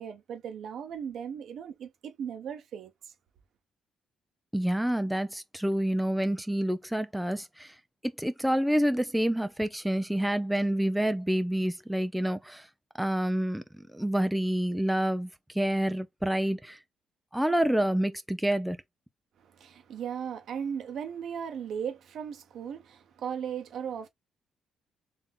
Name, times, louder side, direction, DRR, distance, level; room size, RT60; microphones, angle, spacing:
voice 1, 0.0-3.1 19.4-24.1, right 8 dB, 70° right, 1.1 m, -37 dB
voice 2, 4.5-7.8 8.2-12.7 13.0-16.8 17.3-18.8, right 1 dB, 5° right, 0.5 m, -28 dB
3.7 x 2.9 x 3.6 m
cardioid pair, 90°, 0 cm